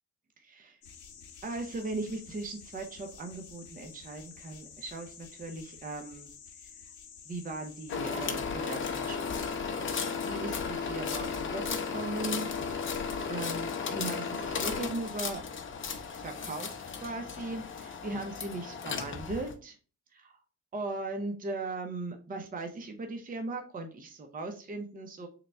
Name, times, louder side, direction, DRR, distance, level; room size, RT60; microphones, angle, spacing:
voice 1, 0.4-0.8 1.4-6.3 7.3-9.6 10.0-12.5 12.8-15.4 16.1-19.8 20.1-20.4 20.7-25.3, right 2 dB, 30° right, 4 dB, 0.7 m, -38 dB
sound 1, 0.8-8.0, left 6 dB, 75° left, 0.9 m, -51 dB
sound 2, 7.9-19.5, left 5 dB, 40° left, 0.7 m, -35 dB
3.8 x 2.2 x 4.2 m, 0.37 s
cardioid pair, 90°, 30 cm